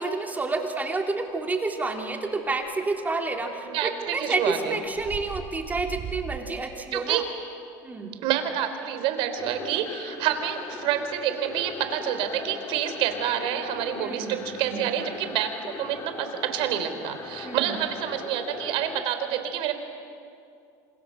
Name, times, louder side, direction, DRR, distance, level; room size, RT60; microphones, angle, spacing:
voice 1, 0.0-7.2 7.8-8.1 14.0-15.0 17.4-17.7, right 3 dB, 15° right, 3 dB, 3.3 m, -29 dB
sound 1, 2.7-2.8 4.1-4.4 4.9-6.4, right 7 dB, 40° right, 3.0 m, -37 dB
voice 2, 3.6-4.8 6.9-7.2 8.2-19.7, right 10 dB, 65° right, 8 dB, 3.5 m, -28 dB
sound 2, 9.4-19.0, left 5 dB, 35° left, 2.4 m, -40 dB
27.5 x 27.0 x 7.6 m, 2.5 s
supercardioid pair, 110°, 9 cm